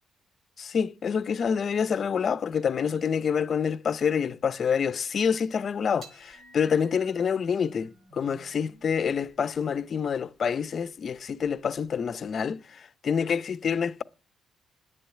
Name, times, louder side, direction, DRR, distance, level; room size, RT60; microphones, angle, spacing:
voice 1, 0.6-14.0, left 7 dB, 50° left, 0.7 m, -27 dB
sound 1, 6.0-12.5, right 2 dB, 70° right, 5.1 m, -55 dB
10.0 x 8.6 x 8.4 m
cardioid pair, 90°, 0 cm